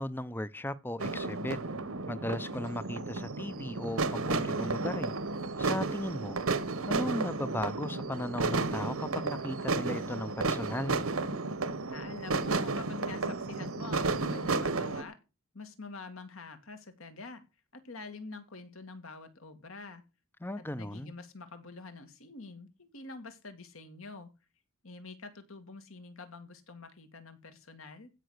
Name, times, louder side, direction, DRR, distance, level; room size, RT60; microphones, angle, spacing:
voice 1, 0.0-1.6 2.1-5.1 5.6-6.4 6.9-11.0 20.4-21.1, left 1 dB, 10° left, 0.5 m, -36 dB
sound 1, 1.0-15.0, right 3 dB, 75° right, 1.1 m, -32 dB
voice 2, 11.9-15.2 15.5-17.4 17.7-20.0 20.8-24.3 24.8-28.1, left 3 dB, 70° left, 2.2 m, -46 dB
15.5 x 5.8 x 6.5 m
head